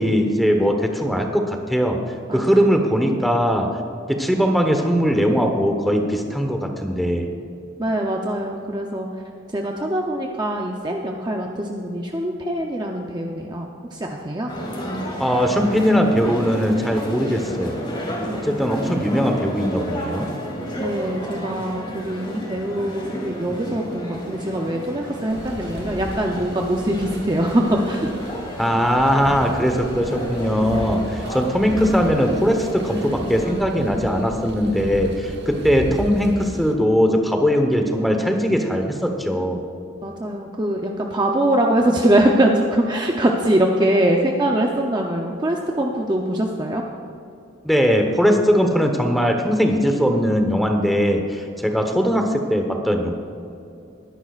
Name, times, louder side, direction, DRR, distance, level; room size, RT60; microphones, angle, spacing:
voice 1, 0.0-2.0 2.3-3.7 4.1-7.3 15.2-17.8 18.4-20.3 28.6-39.6 47.6-53.1, equal, ahead, 3 dB, 1.0 m, -20 dB
voice 2, 2.3-2.7 7.8-9.1 9.5-14.5 18.3-18.5 20.8-28.1 40.0-46.8, right 1 dB, 20° right, 0 dB, 0.7 m, -23 dB
sound 1, 14.5-33.5, equal, 25° left, 2.7 m, -32 dB
sound 2, 25.3-36.7, right 1 dB, 55° right, 1.2 m, -35 dB
22.0 x 11.0 x 2.5 m, 2.6 s
head